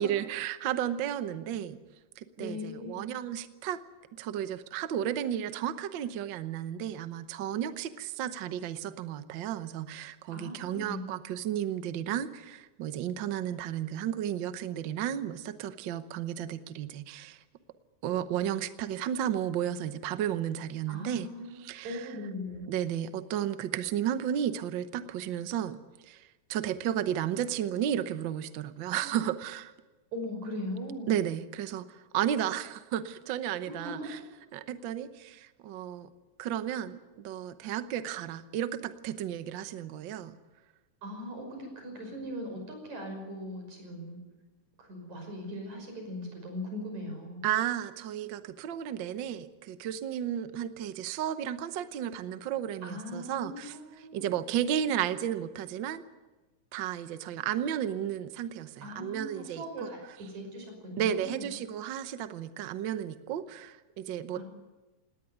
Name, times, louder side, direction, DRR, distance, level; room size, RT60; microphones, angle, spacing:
voice 1, 0.0-1.8 2.2-3.8 4.1-17.4 18.0-21.3 21.6-22.1 22.7-29.7 31.1-34.2 34.5-36.1 36.4-40.4 47.4-53.8 54.1-56.0 56.7-59.9 61.0-64.4, right 10 dB, 85° right, 11 dB, 1.0 m, -33 dB
voice 2, 2.4-3.0 10.3-11.0 20.9-22.7 29.0-29.2 30.1-31.1 33.7-34.1 41.0-44.2 44.8-47.4 52.8-54.3 58.8-61.5 64.3-64.4, left 1 dB, 65° right, 4 dB, 7.1 m, -40 dB
19.0 x 18.5 x 9.3 m, 1.2 s
omnidirectional pair, 3.6 m